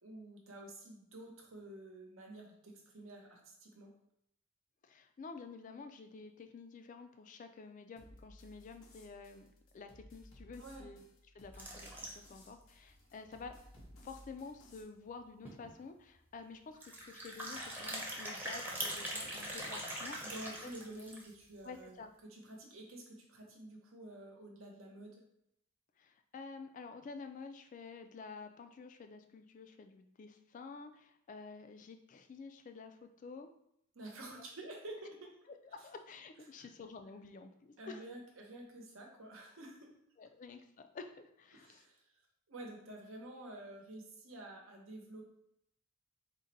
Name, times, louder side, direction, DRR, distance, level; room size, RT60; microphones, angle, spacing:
voice 1, 0.0-3.9 10.6-10.9 20.2-22.0 22.2-25.1 33.9-35.3 36.6-36.7 37.8-39.9 41.5-42.1 42.5-45.2, right 1 dB, 75° right, 0 dB, 0.9 m, -50 dB
voice 2, 4.8-9.5 9.7-11.0 11.3-13.5 14.0-20.3 20.6-20.7 21.6-22.1 26.0-33.5 34.3-34.4 35.7-38.0 40.2-41.8, left 4 dB, 40° left, 7 dB, 0.3 m, -50 dB
sound 1, 8.0-14.8, left 1 dB, 90° left, 0.9 m, -59 dB
sound 2, 11.5-12.5 12.9-13.0 13.2-13.3 13.8-13.9 15.1-15.2 15.4-15.7 16.7-21.4, right 1 dB, 10° right, 0.7 m, -42 dB
3.8 x 2.2 x 4.0 m, 0.75 s
head